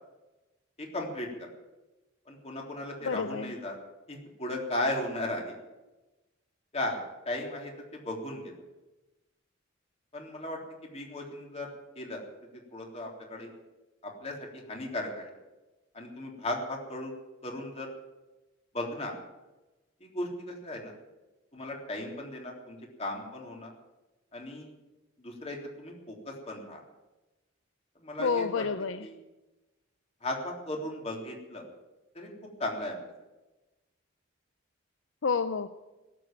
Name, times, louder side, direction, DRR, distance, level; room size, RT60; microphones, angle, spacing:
voice 1, 0.8-1.5 2.3-3.8 4.1-5.6 6.7-8.5 10.1-10.6 10.9-11.7 12.0-12.2 12.7-13.5 14.0-15.3 15.9-17.1 17.4-17.9 18.7-19.1 20.0-20.9 21.5-23.7 24.3-24.7 25.2-26.8 28.0-28.6 29.0-29.1 30.2-31.6 32.1-32.3 32.6-33.0, left 1 dB, 30° left, 0 dB, 3.6 m, -36 dB
voice 2, 3.0-3.5 28.2-29.1 35.2-35.7, left 5 dB, 70° left, 11 dB, 0.6 m, -29 dB
18.0 x 8.3 x 9.0 m, 1.1 s
head